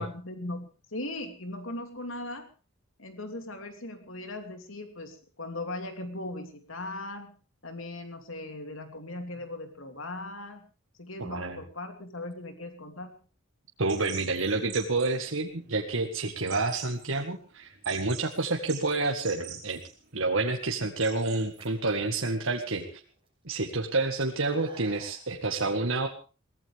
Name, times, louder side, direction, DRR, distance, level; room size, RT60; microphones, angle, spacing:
voice 1, 0.0-2.5 3.0-7.3 7.6-10.6 11.0-13.2, left 2 dB, 80° left, 6 dB, 2.9 m, -39 dB
voice 2, 11.2-11.6 13.8-19.8 20.1-23.0 23.5-26.1, right 3 dB, 75° right, 2 dB, 1.8 m, -29 dB
sound 1, 13.9-21.7, right 8 dB, 55° right, 5.2 m, -46 dB
sound 2, 20.4-20.9 21.4-23.3 23.6-25.2, right 1 dB, 25° right, 6.8 m, -51 dB
22.5 x 18.0 x 3.5 m, 0.35 s
head